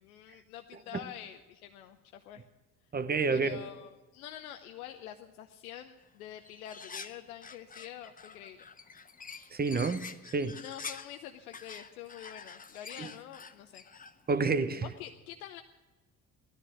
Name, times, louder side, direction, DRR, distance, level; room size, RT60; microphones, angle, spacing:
voice 1, 0.0-2.4 3.3-8.7 10.6-13.8 14.8-15.6, left 11 dB, 70° left, 0.8 m, -46 dB
voice 2, 2.9-3.6 9.5-10.0 10.3-10.6 13.0-13.1 14.3-14.9, right 4 dB, 20° right, 1.0 m, -29 dB
sound 1, 6.0-6.1 6.4-11.2 11.5-14.4, left 5 dB, 20° left, 0.9 m, -47 dB
17.5 x 13.0 x 6.3 m
figure-of-eight pair, 50°, 44 cm